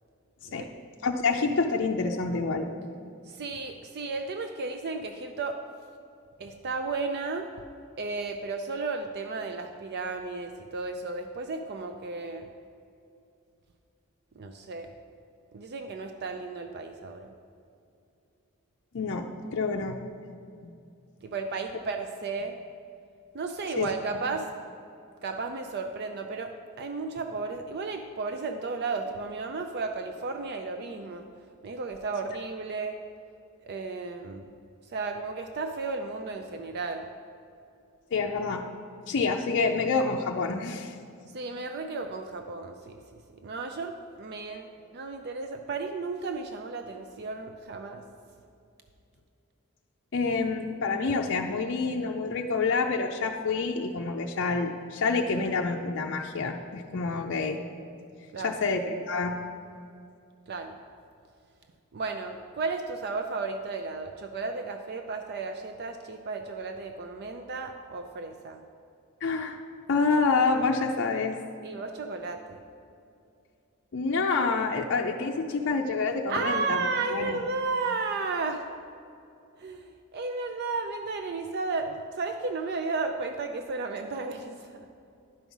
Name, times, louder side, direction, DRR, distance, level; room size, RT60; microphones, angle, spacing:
voice 1, 1.0-2.7 18.9-20.0 20.6-20.7 23.8-23.9 38.1-38.7 39.1-41.0 50.1-57.6 58.4-59.4 69.2-69.6 69.9-71.4 73.9-77.4, left 4 dB, 55° left, 1 dB, 0.5 m, -27 dB
voice 2, 3.3-5.6 6.4-7.5 8.0-12.5 14.4-14.9 15.5-17.3 21.2-22.5 23.3-24.5 25.2-31.3 31.6-33.0 33.6-34.5 34.9-37.1 41.3-43.0 43.4-48.0 58.3-58.6 60.5-60.8 61.9-68.6 71.6-72.6 76.3-78.7 79.6-84.9, right 4 dB, 50° right, 6 dB, 0.5 m, -34 dB
10.5 x 5.5 x 6.0 m, 2.5 s
head